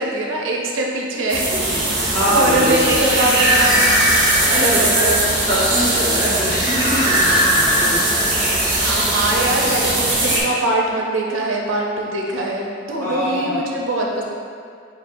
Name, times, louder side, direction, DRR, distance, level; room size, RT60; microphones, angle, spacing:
voice 1, 0.0-3.9 4.4-5.2 8.8-14.2, right 1 dB, 75° right, -1 dB, 0.6 m, -22 dB
sound 1, 1.3-10.4, right 1 dB, 50° right, 1.3 m, -18 dB
voice 2, 2.1-3.1 4.5-8.0 13.0-13.6, equal, 10° left, -13 dB, 1.3 m, -23 dB
6.1 x 2.7 x 2.6 m, 2.2 s
head